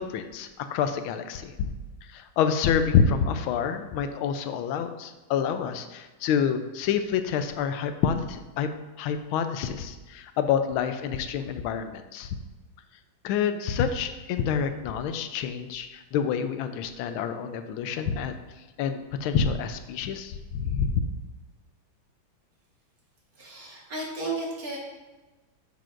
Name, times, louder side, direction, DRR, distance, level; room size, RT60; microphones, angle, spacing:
voice 1, 0.0-1.7 2.1-8.7 9.0-12.3 13.2-18.4 18.8-21.0, left 7 dB, 90° left, 9 dB, 1.4 m, -27 dB
voice 2, 23.3-24.8, right 2 dB, 50° right, -3 dB, 1.8 m, -33 dB
9.2 x 6.7 x 2.5 m, 1.2 s
omnidirectional pair, 2.2 m